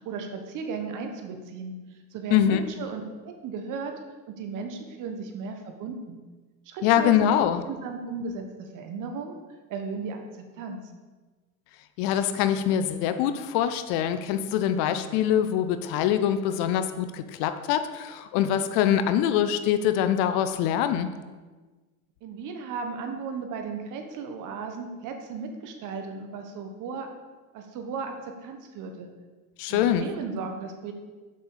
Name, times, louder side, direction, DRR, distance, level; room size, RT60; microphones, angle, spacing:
voice 1, 0.0-1.7 2.1-3.9 4.3-6.2 6.6-9.4 9.7-10.2 10.6-10.8 22.2-27.1 27.5-29.1 29.7-30.9, right 5 dB, 60° right, 5 dB, 1.5 m, -35 dB
voice 2, 2.3-2.6 6.8-7.6 12.0-21.1 29.6-30.1, left 10 dB, 75° left, 10 dB, 0.8 m, -24 dB
7.7 x 5.5 x 6.7 m, 1.3 s
supercardioid pair, 105°, 36 cm